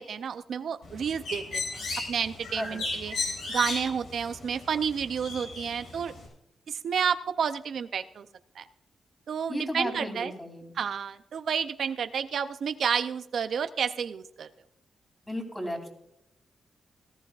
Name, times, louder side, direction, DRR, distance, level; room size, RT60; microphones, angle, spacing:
voice 1, 0.0-1.8 2.1-3.1 3.5-6.1 6.7-8.3 8.6-8.7 9.3-10.3 10.8-14.5, right 7 dB, 70° right, 10 dB, 0.5 m, -30 dB
Bird, 0.8-6.3, left 3 dB, 90° left, 5.1 m, -36 dB
voice 2, 9.5-10.7 15.2-15.9, equal, 10° left, 2 dB, 3.0 m, -34 dB
18.0 x 14.5 x 2.4 m, 0.76 s
cardioid pair, 110°, 0 cm